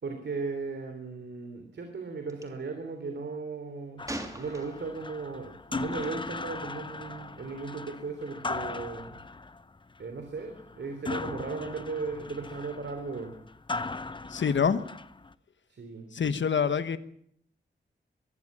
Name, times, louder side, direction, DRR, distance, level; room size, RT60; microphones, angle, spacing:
voice 1, 0.0-4.0 4.3-9.2 10.0-13.3 15.7-16.0, right 4 dB, 70° right, 3.6 m, -36 dB
Gunshot gunfire, 2.3-2.5 4.1-5.1 5.9-6.1, right 1 dB, 15° right, 3.0 m, -39 dB
sound 1, 4.0-15.3, left 3 dB, 25° left, 0.8 m, -39 dB
voice 2, 14.3-14.8 16.1-17.0, left 6 dB, 80° left, 1.4 m, -26 dB
23.5 x 14.5 x 8.9 m
wide cardioid pair, 100°, 19 cm